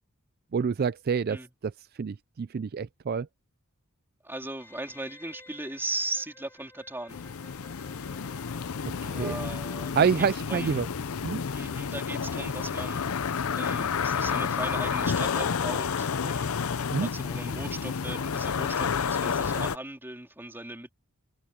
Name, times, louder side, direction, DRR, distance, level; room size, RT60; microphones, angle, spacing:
voice 1, 0.5-1.4 2.0-3.3 9.0-9.3 9.9-10.9 11.2-11.4 16.9-17.1, right 6 dB, 45° right, 0.4 m, -27 dB
voice 2, 4.2-7.2 9.1-10.9 11.5-16.6 17.0-20.9, right 2 dB, 10° right, 3.6 m, -38 dB
Wind instrument woodwind instrument, 4.6-10.1 10.5-10.6, left 2 dB, 10° left, 6.8 m, -55 dB
sound 1, 7.1-19.8, left 6 dB, 70° left, 0.6 m, -30 dB
head